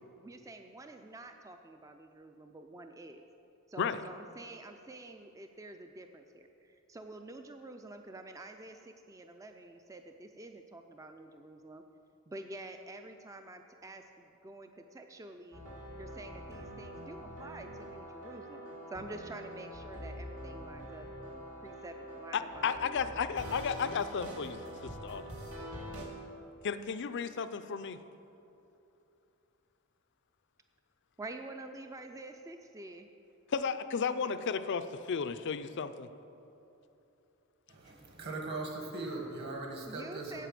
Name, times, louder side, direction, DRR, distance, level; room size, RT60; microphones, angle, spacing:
voice 1, 0.2-3.2 3.7-11.8 12.3-15.6 16.0-21.1 21.6-23.3 31.2-33.1 39.8-40.5, right 2 dB, 15° right, 6 dB, 0.4 m, -48 dB
sound 1, 15.5-26.1, equal, 90° right, 2.1 m, -45 dB
voice 2, 22.3-24.6 24.8-25.3 26.6-28.0 33.5-36.1, left 6 dB, 55° left, 12 dB, 0.4 m, -33 dB
voice 3, 37.7-40.5, right 2 dB, 50° right, 1 dB, 1.7 m, -40 dB
8.2 x 7.8 x 7.6 m, 2.9 s
head